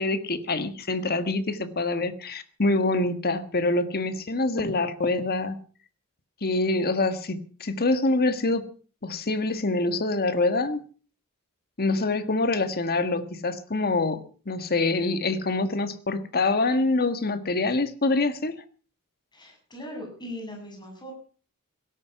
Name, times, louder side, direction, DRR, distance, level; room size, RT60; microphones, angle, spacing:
voice 1, 0.0-5.6 6.4-8.7 9.0-10.8 11.8-18.6, left 2 dB, 45° left, 11 dB, 1.6 m, -25 dB
voice 2, 19.3-21.1, left 1 dB, 20° left, 1 dB, 7.4 m, -39 dB
17.0 x 13.0 x 5.9 m, 0.39 s
head